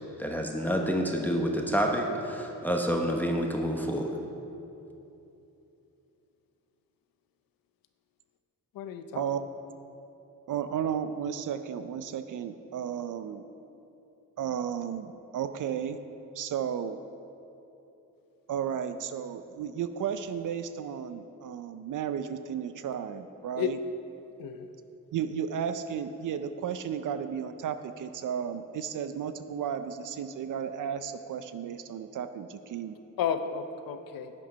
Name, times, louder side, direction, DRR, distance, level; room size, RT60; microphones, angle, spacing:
voice 1, 0.2-4.1, equal, 5° left, 1 dB, 1.0 m, -28 dB
voice 2, 8.7-9.2 23.6-23.7 24.4-24.7 33.2-34.3, left 8 dB, 90° left, 9 dB, 0.7 m, -32 dB
voice 3, 10.5-13.4 14.4-16.0 16.4-17.0 18.5-23.8 25.1-33.0, right 8 dB, 65° right, 10 dB, 0.5 m, -33 dB
9.8 x 8.5 x 5.1 m, 2.9 s
cardioid pair, 85°, 33 cm